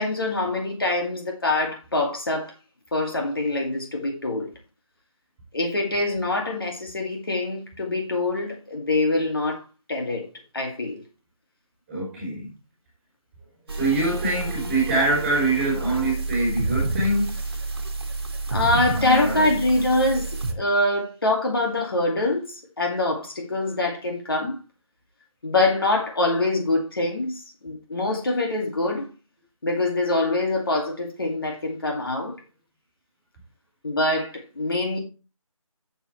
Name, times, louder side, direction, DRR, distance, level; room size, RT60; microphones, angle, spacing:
voice 1, 0.0-2.5 2.9-4.5 5.5-9.6 9.9-10.3 10.5-11.0 18.5-24.6 25.4-29.1 29.6-32.3 33.8-35.0, left 2 dB, 40° left, 2.2 m, -24 dB
voice 2, 11.9-12.5 13.7-17.4 19.0-19.5, right 2 dB, 5° right, 3.5 m, -24 dB
sound 1, 13.7-20.5, right 3 dB, 45° right, 1.8 m, -29 dB
11.0 x 7.3 x 3.1 m
figure-of-eight pair, 175°, 18 cm